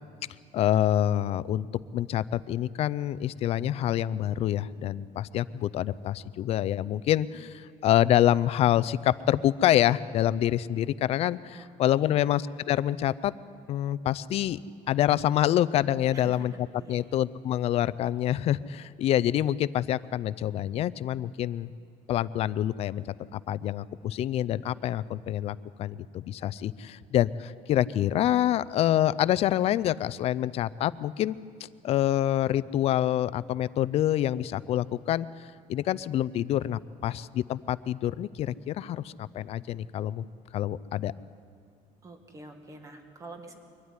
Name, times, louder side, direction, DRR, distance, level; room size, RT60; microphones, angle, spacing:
voice 1, 0.5-1.7 1.9-12.4 12.7-13.3 13.7-14.6 14.9-21.7 22.1-23.0 23.3-31.4 31.8-40.3 40.5-41.1, left 12 dB, 45° left, 17 dB, 0.4 m, -26 dB
voice 2, 11.5-12.3 16.1-16.5 16.8-17.1 42.0-43.6, right 2 dB, 25° right, 5 dB, 1.9 m, -47 dB
23.0 x 12.5 x 9.8 m, 2.2 s
cardioid pair, 170°, 14 cm